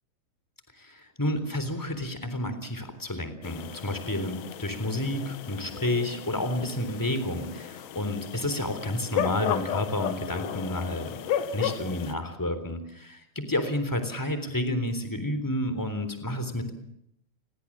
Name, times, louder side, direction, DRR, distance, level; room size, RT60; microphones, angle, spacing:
voice 1, 0.8-11.2 11.5-16.7, left 1 dB, 5° left, 10 dB, 2.7 m, -30 dB
sound 1, 3.4-12.1, left 10 dB, 75° left, 3.4 m, -34 dB
30.0 x 22.0 x 7.5 m, 0.76 s
omnidirectional pair, 5.2 m